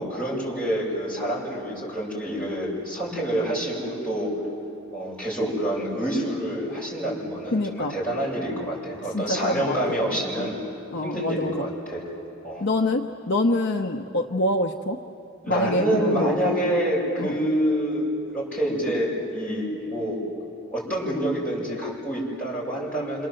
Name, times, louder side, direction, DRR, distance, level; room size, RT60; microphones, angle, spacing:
voice 1, 0.0-4.3 4.9-10.6 11.0-12.0 12.4-12.7 15.4-20.2 20.7-23.3, right 1 dB, 5° left, -7 dB, 7.9 m, -27 dB
voice 2, 7.5-7.9 9.1-9.8 10.9-11.6 12.6-15.0 15.5-16.6 17.2-17.3, left 1 dB, 55° left, 4 dB, 0.9 m, -25 dB
28.0 x 27.0 x 7.8 m, 2.7 s
head